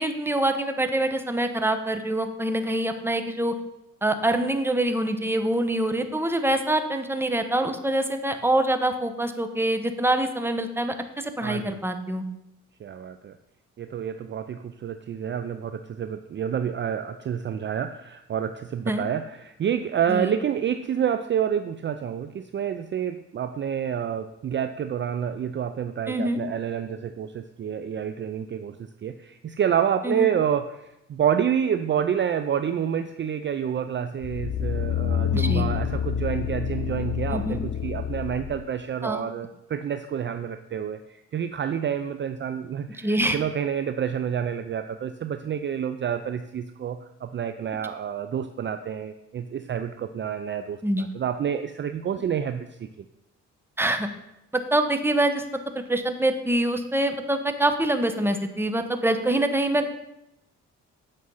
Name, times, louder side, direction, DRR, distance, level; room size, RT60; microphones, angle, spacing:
voice 1, 0.0-3.6 4.0-12.2 18.9-19.0 20.1-20.3 26.1-26.4 30.0-30.2 35.3-35.7 37.3-37.6 39.0-39.2 43.0-43.4 50.8-51.1 53.8-54.1 54.7-55.4 55.7-59.9, right 1 dB, 10° right, 7 dB, 1.0 m, -25 dB
voice 2, 11.4-11.8 12.8-13.4 13.8-28.8 29.0-52.9, right 8 dB, 40° right, 10 dB, 0.5 m, -28 dB
sound 1, 34.2-38.6 39.1-39.2, left 10 dB, 55° left, 0.6 m, -28 dB
8.7 x 6.2 x 5.5 m, 0.87 s
cardioid pair, 90°, 30 cm